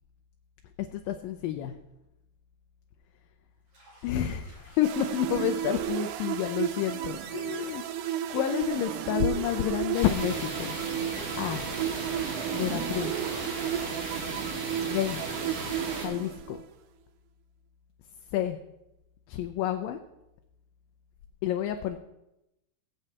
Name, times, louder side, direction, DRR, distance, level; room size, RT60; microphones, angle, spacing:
voice 1, 0.9-1.8 4.0-7.8 8.3-10.8 11.4-11.7 12.5-13.3 14.8-15.2 15.9-16.6 18.3-18.6 19.3-20.0 21.4-22.0, left 11 dB, 80° left, 5 dB, 2.3 m, -29 dB
Bathtub (filling or washing), 3.7-12.4, right 1 dB, 45° right, 5.7 m, -55 dB
sound 1, 4.8-16.7, right 11 dB, 85° right, 1.7 m, -33 dB
sound 2, 9.9-16.1, right 2 dB, 65° right, 3.4 m, -36 dB
20.0 x 8.0 x 2.9 m, 0.89 s
omnidirectional pair, 4.1 m